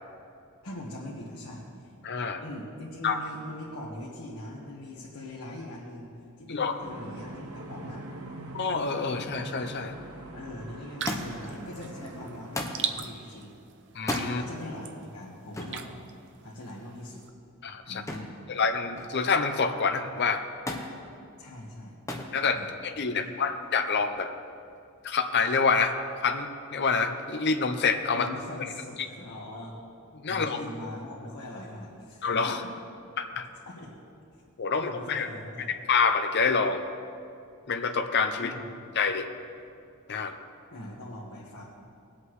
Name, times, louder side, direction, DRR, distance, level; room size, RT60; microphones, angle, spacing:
voice 1, 0.6-1.9 2.4-6.1 6.4-8.0 10.3-13.5 14.2-15.9 16.4-17.2 17.8-18.4 21.4-22.0 22.5-22.7 23.1-23.3 28.1-29.8 30.3-32.8 33.7-34.0 34.7-35.7 38.4-38.6 40.7-41.6, left 1 dB, 85° left, -5 dB, 1.5 m, -41 dB
voice 2, 2.0-2.4 3.0-3.2 6.5-6.7 8.5-10.0 13.9-14.4 17.6-18.0 18.5-20.4 22.3-24.3 25.0-26.0 26.2-28.3 30.2-30.6 32.2-32.6 33.2-33.5 34.6-35.3 35.7-36.8 37.7-38.5 39.0-39.3 40.1-40.3, left 5 dB, 50° left, 6 dB, 0.7 m, -27 dB
sound 1, 6.8-13.1, right 1 dB, 85° right, 1.0 m, -43 dB
sound 2, 11.0-17.3, right 8 dB, 55° right, 0.6 m, -40 dB
Thump thud, 11.1-11.5 12.5-12.9 14.0-14.3 15.5-15.8 18.1-18.4 18.7-19.3 20.7-20.9 22.1-22.4 23.3-23.8 24.8-24.9, left 1 dB, 15° left, 0.9 m, -34 dB
20.5 x 8.3 x 3.2 m, 2.4 s
head